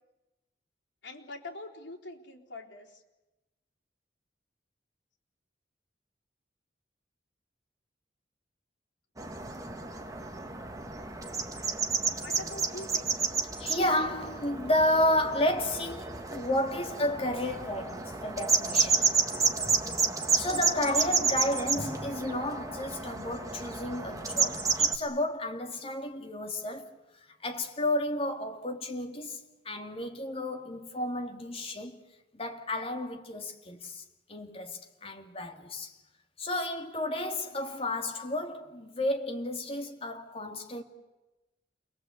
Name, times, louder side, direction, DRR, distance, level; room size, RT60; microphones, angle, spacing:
voice 1, 1.0-3.0 12.1-13.5, left 2 dB, 85° left, 3.8 m, -44 dB
sound 1, 9.2-25.0, right 4 dB, 20° right, 1.8 m, -30 dB
voice 2, 13.6-19.1 19.6-19.8 20.1-27.0 27.4-32.0 32.3-34.0 34.3-36.0 36.4-40.8, left 1 dB, 35° left, 2.4 m, -32 dB
28.5 x 22.0 x 8.3 m
head